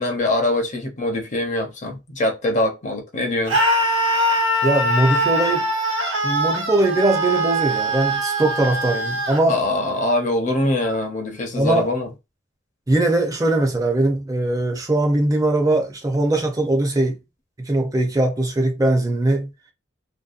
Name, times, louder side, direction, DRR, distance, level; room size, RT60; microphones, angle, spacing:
voice 1, 0.0-3.6 9.5-12.1, left 1 dB, 40° left, 0.6 m, -23 dB
Screaming, 3.5-9.4, right 1 dB, 65° right, 1.0 m, -22 dB
voice 2, 4.6-5.7 6.2-9.6 11.6-11.9 12.9-17.2 17.6-19.5, right 2 dB, 20° right, 0.5 m, -20 dB
2.6 x 2.2 x 2.4 m
head